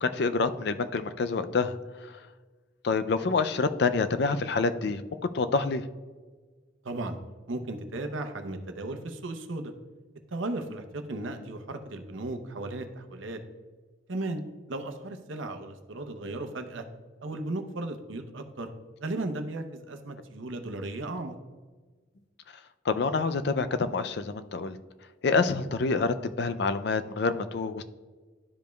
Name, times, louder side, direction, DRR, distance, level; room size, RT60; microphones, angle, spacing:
voice 1, 0.0-1.8 2.8-5.0 5.3-5.8 22.9-24.8 25.2-27.8, left 4 dB, 55° left, 11 dB, 0.4 m, -27 dB
voice 2, 6.8-7.2 7.5-9.7 10.3-13.4 14.1-14.4 14.7-16.9 17.2-18.7 19.0-21.3, right 2 dB, 80° right, 6 dB, 0.8 m, -35 dB
12.0 x 5.1 x 2.3 m, 1.4 s
head